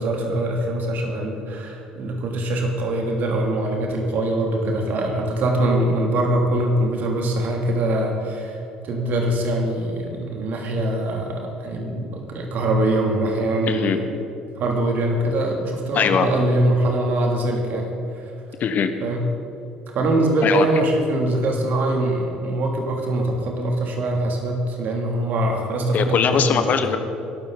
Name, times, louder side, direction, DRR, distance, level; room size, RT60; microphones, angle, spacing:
voice 1, 0.0-14.1 14.6-17.9 18.1-18.2 19.0-19.2 19.9-26.9, right 1 dB, 50° right, 1 dB, 2.8 m, -23 dB
voice 2, 13.7-14.0 15.9-16.3 18.6-18.9 20.4-20.6 25.9-27.0, left 7 dB, 45° left, 9 dB, 1.2 m, -20 dB
21.0 x 12.0 x 4.0 m, 2.8 s
figure-of-eight pair, 55°, 4 cm